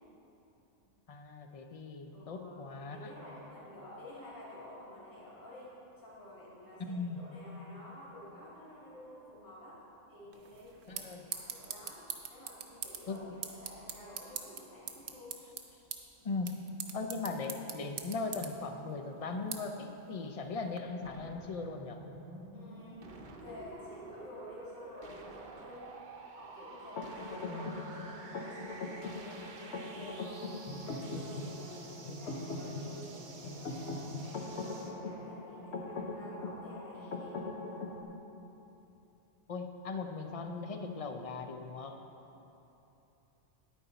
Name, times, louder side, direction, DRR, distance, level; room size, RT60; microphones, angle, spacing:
voice 1, 1.1-3.1 6.8-7.2 10.9-11.2 13.1-13.3 16.2-16.6 16.9-22.0 27.5-27.8 39.5-42.0, left 4 dB, 45° left, 5 dB, 0.5 m, -39 dB
voice 2, 2.1-9.8 10.1-15.4 16.2-16.3 22.2-25.9 26.3-30.4 30.8-37.4, left 1 dB, 15° left, -9 dB, 2.4 m, -51 dB
sound 1, 10.3-20.8, right 7 dB, 85° right, 1.1 m, -45 dB
sound 2, 21.0-35.0, right 3 dB, 45° right, 0.8 m, -50 dB
sound 3, 27.0-38.0, left 2 dB, 65° left, 1.1 m, -41 dB
9.7 x 9.6 x 4.0 m, 3.0 s
omnidirectional pair, 1.3 m